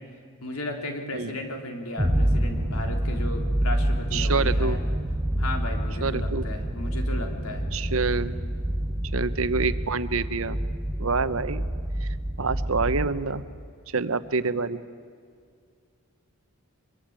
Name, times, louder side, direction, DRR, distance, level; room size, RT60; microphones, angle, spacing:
voice 1, 0.4-4.8 5.4-7.7, left 1 dB, 85° left, 3 dB, 3.7 m, -35 dB
sound 1, 2.0-13.2, right 1 dB, 10° right, 1.4 m, -27 dB
voice 2, 4.1-4.8 6.0-6.5 7.7-8.4 9.1-10.6 11.0-11.7 12.0-12.1 12.4-13.4 13.9-14.8, right 4 dB, 70° right, 13 dB, 1.0 m, -27 dB
24.0 x 23.5 x 8.9 m, 2.2 s
head